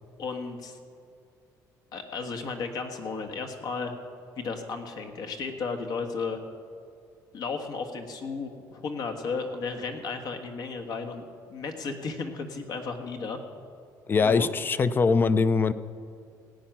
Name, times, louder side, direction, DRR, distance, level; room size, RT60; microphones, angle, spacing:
voice 1, 0.2-0.8 1.9-3.9 4.4-6.4 7.3-13.4 14.2-14.5, left 4 dB, 65° left, 5 dB, 1.5 m, -34 dB
voice 2, 14.1-15.7, left 4 dB, 30° left, 14 dB, 0.5 m, -22 dB
17.0 x 9.1 x 6.0 m, 2.4 s
cardioid pair, 115°, 7 cm